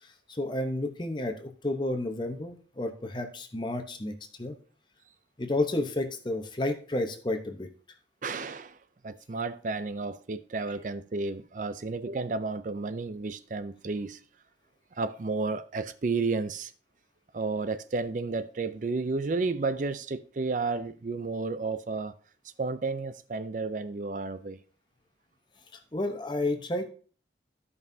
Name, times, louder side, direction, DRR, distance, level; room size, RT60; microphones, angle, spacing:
voice 1, 0.0-4.6 5.4-7.7 25.7-26.9, left 2 dB, 25° left, 0.9 m, -31 dB
voice 2, 8.2-8.8 9.0-14.2 14.9-16.7 17.3-22.1 22.6-24.6, right 3 dB, 45° right, 0.4 m, -32 dB
14.5 x 5.5 x 2.7 m
head